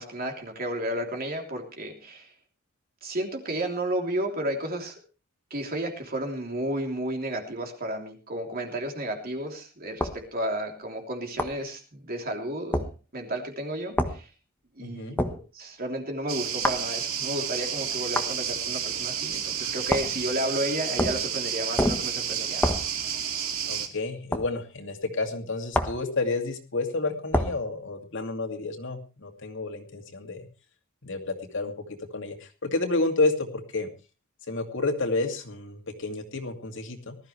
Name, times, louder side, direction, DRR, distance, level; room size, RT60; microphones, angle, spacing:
voice 1, 0.0-2.3 3.0-5.0 5.5-12.8 13.1-14.3 14.7-15.2 15.5-22.8, right 1 dB, 45° right, 3 dB, 3.2 m, -32 dB
sound 1, 10.0-10.2 11.4-11.6 12.7-12.9 14.0-14.2 15.2-15.4 16.6-16.9 18.1-18.3 19.9-20.2 21.0-21.3 21.8-22.1 22.6-22.9 24.3-24.5 25.7-26.0 27.3-27.6, left 1 dB, 10° left, 1.2 m, -26 dB
voice 2, 14.8-15.2 23.6-30.5 31.0-33.9 34.5-37.2, left 3 dB, 60° left, 4 dB, 2.5 m, -30 dB
sound 2, 16.3-23.9, right 8 dB, 75° right, 2.4 m, -31 dB
19.5 x 13.5 x 3.3 m, 0.32 s
head